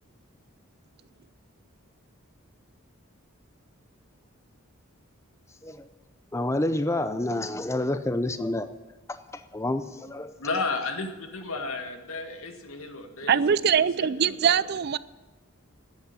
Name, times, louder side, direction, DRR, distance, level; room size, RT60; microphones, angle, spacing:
voice 1, 6.3-8.7 9.1-9.2 9.5-10.3, left 1 dB, 15° left, 10 dB, 0.5 m, -28 dB
voice 2, 10.4-13.6 14.0-14.1 14.5-14.6, left 3 dB, 85° left, 5 dB, 1.8 m, -33 dB
voice 3, 13.3-15.0, right 7 dB, 50° right, 18 dB, 0.4 m, -22 dB
10.5 x 8.5 x 9.5 m, 1.2 s
head